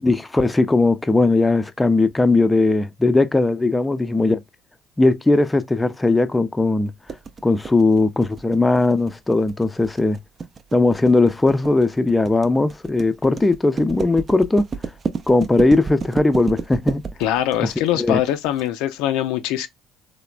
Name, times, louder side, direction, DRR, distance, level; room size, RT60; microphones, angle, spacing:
voice 1, 0.0-4.4 5.0-6.9 7.4-10.2 10.7-14.6 15.3-17.0 18.0-18.2, left 2 dB, 15° left, 0.4 m, -18 dB
sound 1, 7.1-18.6, right 5 dB, 40° right, 0.4 m, -31 dB
voice 2, 17.2-19.7, left 12 dB, 80° left, 0.4 m, -22 dB
3.2 x 2.1 x 2.4 m
supercardioid pair, 70°, 0 cm